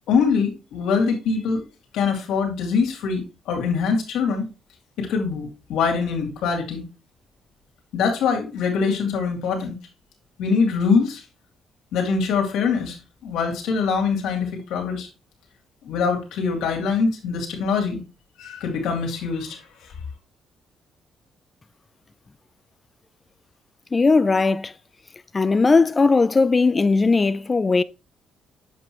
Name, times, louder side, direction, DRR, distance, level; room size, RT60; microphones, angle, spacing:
voice 1, 0.1-1.6 1.9-4.5 5.0-6.8 7.9-9.7 10.4-11.2 11.9-13.0 13.2-15.1 15.8-18.0 18.4-19.9, left 5 dB, 85° left, 2.5 m, -23 dB
voice 2, 23.9-24.7 25.3-27.8, left 4 dB, 30° left, 0.5 m, -18 dB
7.6 x 5.4 x 3.1 m
cardioid pair, 90°, 0 cm